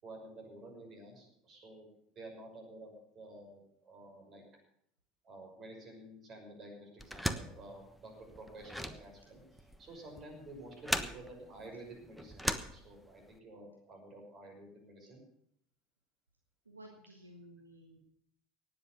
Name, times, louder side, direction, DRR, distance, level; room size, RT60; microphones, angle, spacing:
voice 1, 0.0-1.8 2.1-4.4 5.2-15.2, right 2 dB, 40° right, 1 dB, 6.1 m, -51 dB
sound 1, 7.0-13.3, equal, ahead, 1.2 m, -39 dB
voice 2, 16.7-18.0, right 1 dB, 85° right, 2 dB, 1.8 m, -54 dB
18.5 x 7.9 x 7.0 m, 0.69 s
figure-of-eight pair, 70°, 0 cm